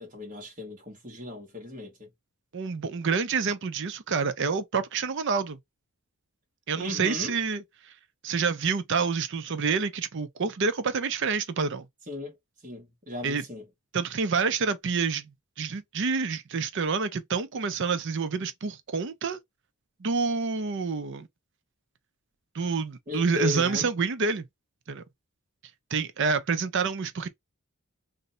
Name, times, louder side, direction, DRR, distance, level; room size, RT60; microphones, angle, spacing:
voice 1, 0.0-2.1 6.8-7.4 12.1-12.4 12.6-13.7 23.1-23.9, left 3 dB, 35° right, 1.1 m, -36 dB
voice 2, 2.5-5.6 6.7-7.6 8.2-11.9 13.2-13.4 13.9-19.4 20.0-21.3 22.5-24.4 24.9-25.0 25.9-27.3, right 5 dB, 55° right, 0.5 m, -28 dB
2.6 x 2.1 x 3.8 m
head